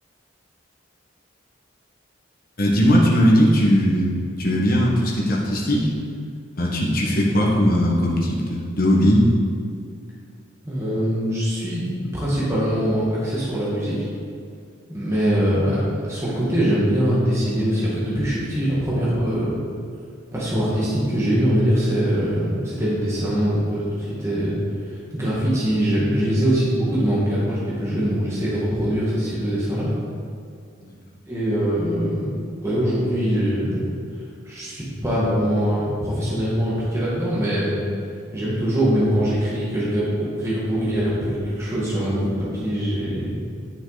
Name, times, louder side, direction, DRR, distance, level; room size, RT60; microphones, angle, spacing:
voice 1, 2.6-4.1 4.4-5.9 6.5-9.2 30.8-30.9, equal, 45° left, -4 dB, 1.5 m, -18 dB
voice 2, 10.6-14.0 14.9-19.6 20.3-24.6 25.1-29.9 31.3-32.3 32.6-33.9 34.4-37.8 38.3-43.3, equal, 15° right, -8 dB, 1.7 m, -22 dB
10.5 x 5.9 x 4.0 m, 2.3 s
head